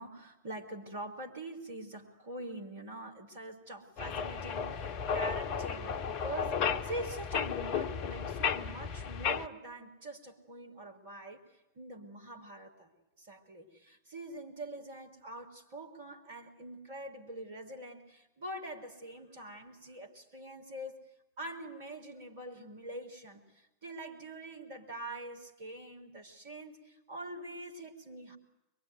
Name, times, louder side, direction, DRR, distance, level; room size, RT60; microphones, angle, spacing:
voice 1, 0.0-11.4 11.8-12.9 13.2-21.0 21.4-28.4, right 1 dB, 55° right, 4 dB, 3.9 m, -44 dB
sound 1, 4.0-9.5, left 7 dB, 40° left, 1.0 m, -34 dB
23.5 x 23.0 x 9.4 m, 0.93 s
figure-of-eight pair, 90°, 0 cm